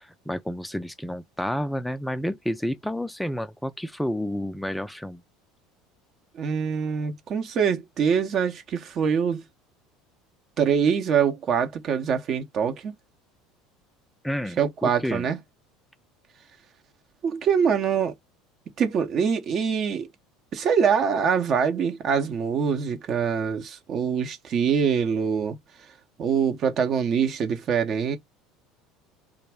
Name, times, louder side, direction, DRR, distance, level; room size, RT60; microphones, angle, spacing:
voice 1, 0.0-5.2 14.2-15.3, equal, 5° left, 0.3 m, -30 dB
voice 2, 6.3-9.4 10.6-12.9 14.6-15.4 17.2-18.1 18.8-20.1 20.5-25.6 26.2-28.2, right 7 dB, 50° right, 0.6 m, -24 dB
2.3 x 2.0 x 3.3 m
hypercardioid pair, 70°, 0 cm